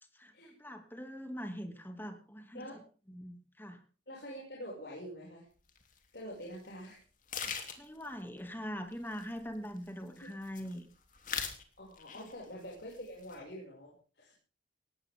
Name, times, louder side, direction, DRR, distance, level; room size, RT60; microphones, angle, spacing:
voice 1, 0.1-2.8 3.1-3.8 7.4-10.9 12.1-12.3, equal, 10° left, 6 dB, 2.6 m, -43 dB
voice 2, 4.1-5.5 6.1-7.0 11.8-14.3, equal, 60° left, -3 dB, 6.5 m, -46 dB
sound 1, 5.7-5.8 6.4-6.6 6.8-6.9 7.3-8.1 8.9-9.9 10.2-10.8 11.1-11.6 12.0-12.4 12.7-13.4, left 7 dB, 45° left, 3.2 m, -40 dB
19.0 x 17.0 x 3.7 m, 0.38 s
head